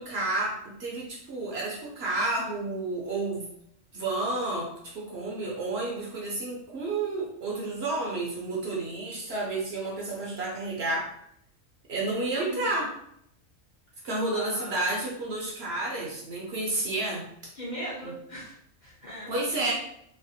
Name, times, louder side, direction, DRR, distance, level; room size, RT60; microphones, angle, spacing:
voice 1, 0.0-3.5 3.9-11.1 11.9-12.9 14.0-17.2 18.0-18.1 19.3-19.7, right 2 dB, 60° right, -3 dB, 0.8 m, -31 dB
voice 2, 12.4-12.8 14.3-14.8 17.5-18.5 18.8-19.7, equal, 45° left, -7 dB, 0.7 m, -39 dB
3.2 x 2.1 x 2.6 m, 0.72 s
omnidirectional pair, 1.4 m